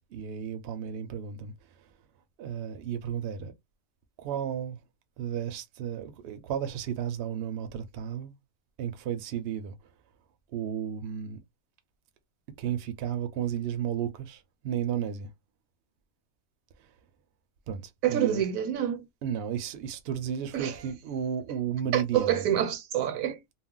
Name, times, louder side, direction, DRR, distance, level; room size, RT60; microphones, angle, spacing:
voice 1, 0.1-1.5 2.4-3.5 4.2-4.8 5.2-8.3 8.8-9.7 10.5-11.4 12.6-15.3 17.7-17.8 18.1-18.4 19.2-22.6, right 9 dB, 60° right, 0.7 m, -33 dB
voice 2, 18.0-19.0 20.5-20.7 21.9-23.4, right 10 dB, 80° right, 1.0 m, -27 dB
2.4 x 2.0 x 3.6 m
omnidirectional pair, 1.4 m